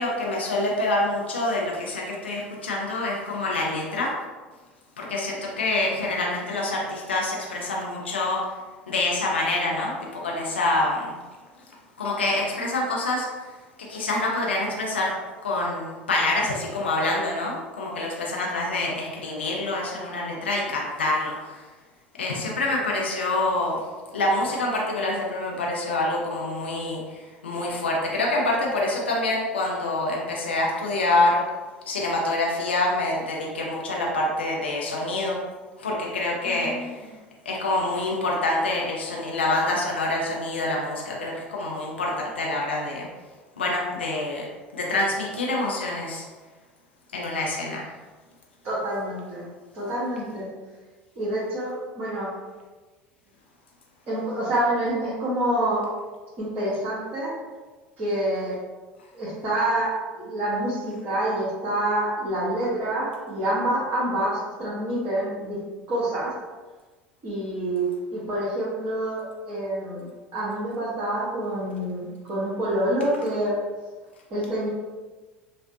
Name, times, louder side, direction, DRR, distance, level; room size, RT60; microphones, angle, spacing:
voice 1, 0.0-4.1 5.0-8.4 8.9-11.1 12.0-13.4 13.8-15.1 15.4-21.7 22.2-23.8 24.1-31.4 31.9-35.4 35.8-37.0 37.4-43.1 43.6-44.5 44.7-46.2 47.1-47.9, left 2 dB, 80° left, -2 dB, 0.5 m, -26 dB
voice 2, 36.5-37.1 48.6-49.4 49.7-50.5 51.1-52.3 54.1-55.8 56.4-57.3 58.0-58.5 59.1-59.9 60.2-65.6 65.9-66.3 67.2-67.8 68.1-70.0 70.3-73.5 74.3-74.7, right 1 dB, 40° right, -10 dB, 1.4 m, -27 dB
5.1 x 2.1 x 2.6 m, 1.3 s
figure-of-eight pair, 70°, 6 cm